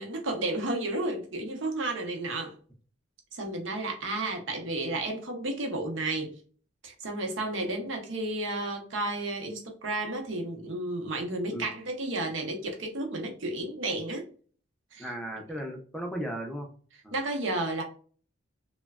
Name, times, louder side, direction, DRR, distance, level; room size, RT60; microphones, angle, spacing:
voice 1, 0.0-2.5 3.3-6.4 6.8-14.2 14.9-15.1 17.1-17.8, right 2 dB, 65° right, 2 dB, 0.7 m, -32 dB
voice 2, 15.0-16.7 17.0-17.2, right 1 dB, ahead, 1 dB, 0.5 m, -36 dB
3.1 x 2.1 x 2.3 m, 0.43 s
head